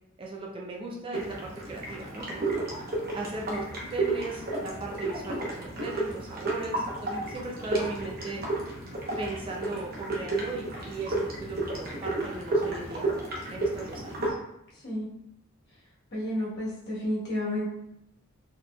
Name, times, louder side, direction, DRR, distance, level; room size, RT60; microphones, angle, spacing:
voice 1, 0.2-2.5 3.1-3.6 3.9-5.5 5.8-8.4 9.2-13.2 13.5-14.4, right 2 dB, 25° right, -2 dB, 0.4 m, -37 dB
sound 1, 1.1-14.3, right 2 dB, 45° right, 0.9 m, -32 dB
voice 2, 16.1-17.7, left 1 dB, 50° left, -6 dB, 1.3 m, -31 dB
4.1 x 2.9 x 2.3 m, 0.80 s
head